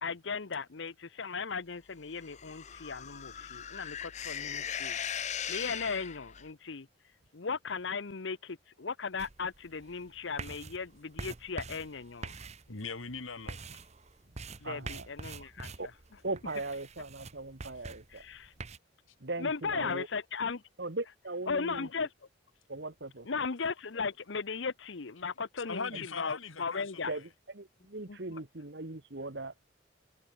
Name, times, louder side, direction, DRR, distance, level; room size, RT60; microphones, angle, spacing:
voice 1, 0.0-5.0 5.5-6.9 7.3-12.3 14.6-15.7 18.1-18.5 19.4-20.6 21.5-22.1 23.3-25.9 26.2-27.1 28.1-28.2, left 5 dB, 65° left, 0.8 m, -37 dB
sound 1, 2.2-6.5, left 8 dB, 35° left, 0.7 m, -39 dB
sound 2, 9.2-18.8, right 3 dB, 35° right, 1.0 m, -46 dB
voice 2, 12.7-13.8 25.7-27.2, left 4 dB, 80° left, 2.4 m, -40 dB
voice 3, 14.6-15.1 15.4-15.5 15.8-15.9 16.2-18.2 19.2-20.1 20.8-21.9 22.7-23.3 25.9-26.0 27.1-29.7, right 2 dB, 55° right, 1.5 m, -39 dB
head